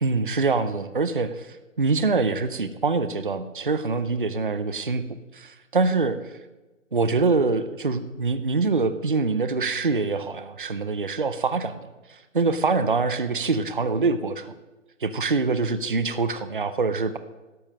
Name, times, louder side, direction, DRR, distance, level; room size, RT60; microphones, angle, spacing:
voice 1, 0.0-6.2 6.9-11.8 12.1-14.5 15.0-17.2, right 4 dB, 40° right, 11 dB, 0.5 m, -24 dB
12.0 x 7.2 x 6.4 m, 1.1 s
hypercardioid pair, 175°, 40 cm